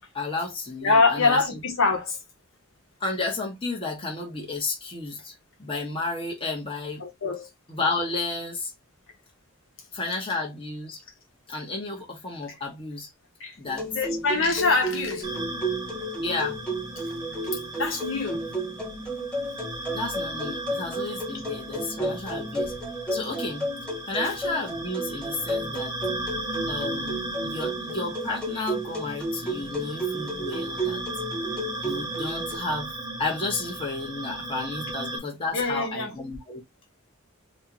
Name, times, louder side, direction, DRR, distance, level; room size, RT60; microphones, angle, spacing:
voice 1, 0.1-1.6 3.0-7.0 7.7-8.7 9.9-11.0 11.5-13.1 13.6-13.9 16.2-16.6 19.9-22.7 23.1-23.7 24.1-25.9 26.7-31.0 31.8-32.9 33.2-36.6, left 3 dB, 25° left, 1.1 m, -32 dB
voice 2, 0.8-2.2 7.0-7.5 13.4-13.6 13.9-15.3 17.7-18.5 24.2-24.3 35.5-36.2, left 3 dB, 65° left, 1.3 m, -24 dB
sound 1, 13.7-32.6, right 1 dB, 5° left, 1.2 m, -32 dB
sound 2, 15.2-35.2, right 1 dB, 20° right, 0.8 m, -36 dB
4.3 x 2.3 x 2.9 m
head